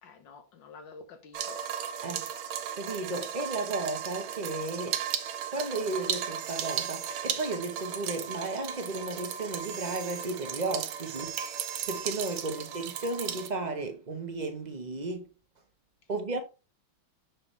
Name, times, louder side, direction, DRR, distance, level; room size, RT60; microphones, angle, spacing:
voice 1, 0.0-1.6 12.4-12.8, left 4 dB, 75° left, 1.8 m, -50 dB
sound 1, 1.3-13.5, right 9 dB, 90° right, 1.5 m, -36 dB
voice 2, 2.0-5.0 5.5-11.4 11.9-15.3 16.1-16.4, right 2 dB, 35° right, 0.7 m, -34 dB
sound 2, 6.4-7.2 9.6-10.3 11.1-12.4, right 9 dB, 65° right, 1.0 m, -42 dB
6.6 x 4.7 x 3.2 m
omnidirectional pair, 2.1 m